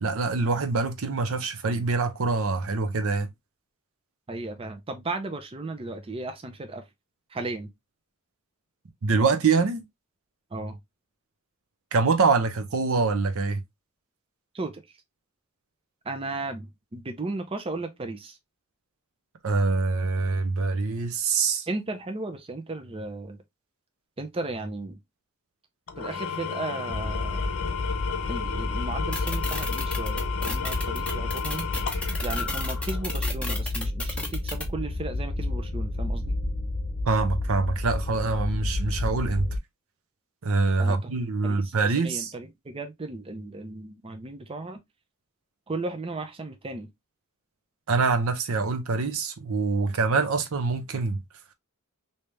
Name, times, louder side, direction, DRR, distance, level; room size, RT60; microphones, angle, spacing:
voice 1, 0.0-3.3 9.0-9.8 11.9-13.6 19.4-21.7 37.1-39.5 40.4-42.3 47.9-51.2, right 4 dB, 70° right, 0.6 m, -25 dB
voice 2, 4.3-6.9 7.3-7.7 10.5-10.8 14.5-15.0 16.0-18.4 21.7-23.4 24.2-25.0 26.0-27.5 28.3-31.7 32.2-36.3 40.8-41.1 41.4-44.8 45.7-46.9, right 2 dB, 25° right, 0.6 m, -35 dB
Engine / Tools, 25.9-33.3, left 6 dB, 70° left, 0.7 m, -33 dB
sound 1, 26.9-39.6, left 2 dB, 25° left, 1.2 m, -31 dB
sound 2, 29.1-34.6, left 2 dB, 5° left, 0.9 m, -33 dB
3.2 x 2.8 x 3.2 m
head